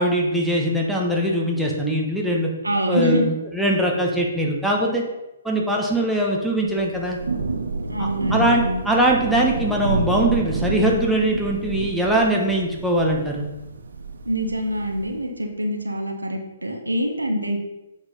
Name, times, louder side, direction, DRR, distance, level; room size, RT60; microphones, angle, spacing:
voice 1, 0.0-2.5 2.9-5.0 5.4-7.2 8.0-13.5, right 1 dB, ahead, -2 dB, 1.5 m, -21 dB
voice 2, 2.6-3.3 7.9-8.8 14.2-17.6, equal, 85° right, 3 dB, 1.3 m, -25 dB
Thunder / Rain, 6.7-15.3, right 3 dB, 70° right, 1.1 m, -29 dB
8.5 x 4.8 x 5.6 m, 0.99 s
figure-of-eight pair, 125°, 0 cm